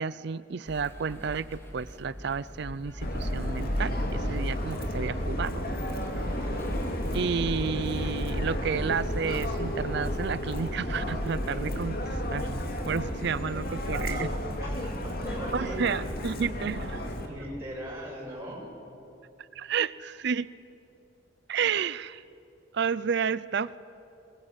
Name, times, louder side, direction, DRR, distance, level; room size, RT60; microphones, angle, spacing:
voice 1, 0.0-5.6 6.2-6.4 7.1-14.3 15.5-17.1 19.5-20.5 21.5-22.2 22.7-23.8, right 6 dB, 60° right, 18 dB, 0.5 m, -31 dB
sound 1, 0.7-11.3, equal, 10° left, 2.1 m, -46 dB
Subway metro underground, 3.0-17.3, equal, 50° left, 2.5 m, -32 dB
voice 2, 14.6-16.0 17.2-18.7, equal, 15° right, -5 dB, 7.5 m, -39 dB
23.5 x 21.5 x 9.1 m, 2.8 s
head